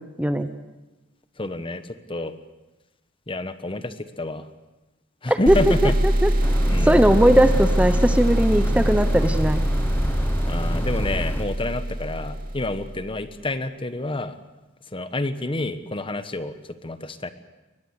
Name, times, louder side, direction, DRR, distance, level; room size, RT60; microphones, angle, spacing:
voice 1, 0.2-0.5 5.3-6.3 6.8-9.6, right 1 dB, 5° right, 10 dB, 0.9 m, -19 dB
voice 2, 1.4-1.8 2.1-2.3 3.3-4.5 5.2-5.9 6.7-7.1 10.4-14.4 14.9-17.3, left 2 dB, 25° left, 11 dB, 1.2 m, -29 dB
sound 1, 5.5-13.0, right 1 dB, 45° right, 2.9 m, -23 dB
sound 2, 6.4-11.4, equal, 10° left, 1.3 m, -31 dB
23.0 x 20.0 x 8.2 m, 1.1 s
head